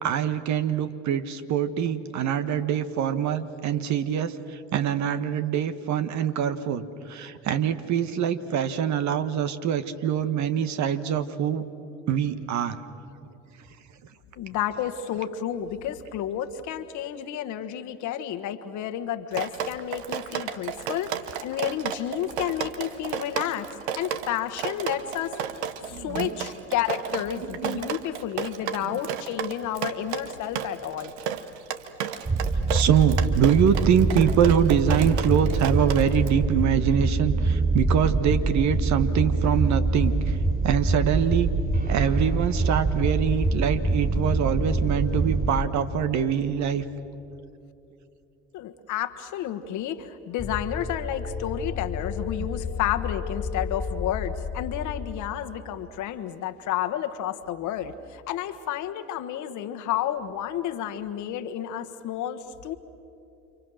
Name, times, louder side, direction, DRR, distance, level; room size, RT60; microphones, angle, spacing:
voice 1, 0.0-11.6 12.1-12.8 25.8-26.4 27.6-27.8 28.9-29.0 32.7-40.4 40.6-41.5 41.9-46.8, right 8 dB, 60° right, 11 dB, 1.4 m, -24 dB
voice 2, 14.4-23.7 24.0-25.4 25.8-31.1 48.5-62.7, left 11 dB, 65° left, 8 dB, 1.4 m, -31 dB
Drip, 19.3-36.3, right 9 dB, 85° right, 1.0 m, -33 dB
sound 1, 32.2-45.5, right 2 dB, 30° right, 7.8 m, -25 dB
sound 2, 50.4-55.4, left 5 dB, 25° left, 2.0 m, -32 dB
30.0 x 26.0 x 6.4 m, 2.7 s
hypercardioid pair, 60°, 32 cm